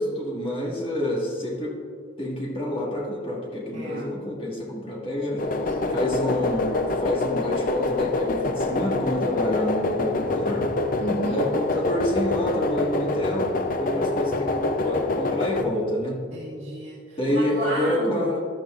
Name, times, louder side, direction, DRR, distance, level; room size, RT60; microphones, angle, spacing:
voice 1, 0.0-1.8 2.2-5.5 5.9-10.7 11.3-16.2 17.2-18.4, left 1 dB, 25° left, -3 dB, 1.6 m, -27 dB
voice 2, 3.7-4.1 5.5-6.0 11.0-11.4 16.3-18.3, right 1 dB, 75° right, -8 dB, 1.8 m, -33 dB
sound 1, 5.4-15.6, left 2 dB, 40° left, 0.5 m, -26 dB
12.0 x 12.0 x 2.4 m, 2.2 s
head